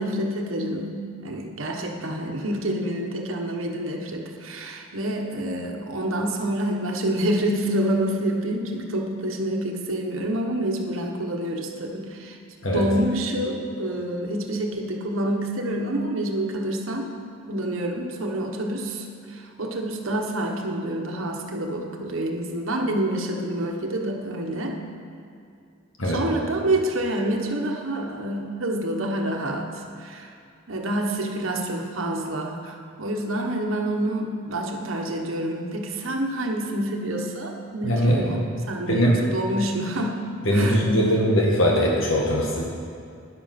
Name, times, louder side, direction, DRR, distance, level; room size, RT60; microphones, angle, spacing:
voice 1, 0.0-12.4 12.7-17.1 17.5-24.8 26.0-29.7 30.0-30.3 30.7-40.2 40.5-41.2, right 1 dB, 85° right, 1 dB, 1.3 m, -27 dB
voice 2, 37.8-38.4 38.9-39.2 40.5-42.6, equal, 75° left, -2 dB, 1.6 m, -21 dB
13.0 x 10.0 x 5.9 m, 2.4 s
head